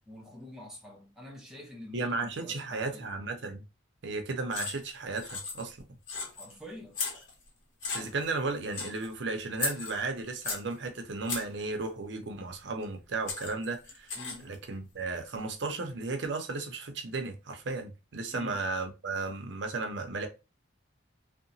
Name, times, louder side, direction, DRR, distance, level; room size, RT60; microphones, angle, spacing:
voice 1, 0.1-3.1 6.4-7.0 14.2-14.5 18.3-18.6, left 1 dB, 5° right, 0.5 m, -46 dB
voice 2, 1.9-3.6 4.0-5.8 7.9-14.1 14.4-20.3, right 3 dB, 65° right, 0.6 m, -34 dB
sound 1, 4.5-4.9 5.2-5.8 6.1-6.5 6.9-7.5 7.8-8.3 8.7-9.1 9.6-10.7 11.3-11.6 12.8-12.9 13.3-14.5, left 4 dB, 80° left, 0.8 m, -36 dB
2.8 x 2.1 x 2.6 m
head